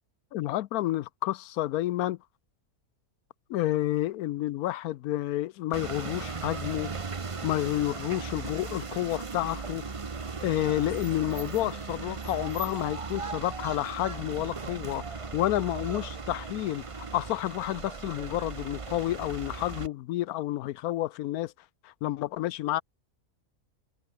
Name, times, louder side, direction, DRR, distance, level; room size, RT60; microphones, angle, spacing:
voice 1, 0.3-2.2 3.5-6.9 7.4-9.8 10.4-21.5 21.8-22.8, left 15 dB, 80° left, 1.0 m, -30 dB
sound 1, 5.7-19.9, right 4 dB, 25° right, 0.8 m, -37 dB
omnidirectional pair, 1.6 m